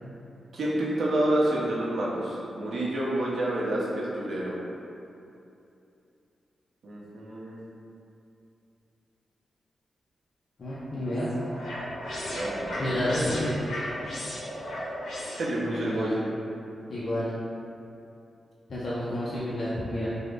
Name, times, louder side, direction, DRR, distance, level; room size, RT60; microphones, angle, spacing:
voice 1, 0.5-4.6 6.8-7.6 12.3-13.0 15.4-16.2, right 1 dB, 75° right, -5 dB, 0.6 m, -28 dB
voice 2, 10.6-11.3 12.8-13.6 15.6-16.1 16.9-17.3 18.7-20.1, left 1 dB, 50° left, -10 dB, 0.5 m, -30 dB
sound 1, 10.7-15.9, left 1 dB, 85° left, 0.8 m, -36 dB
3.4 x 2.0 x 3.3 m, 2.7 s
wide cardioid pair, 110°, 0 cm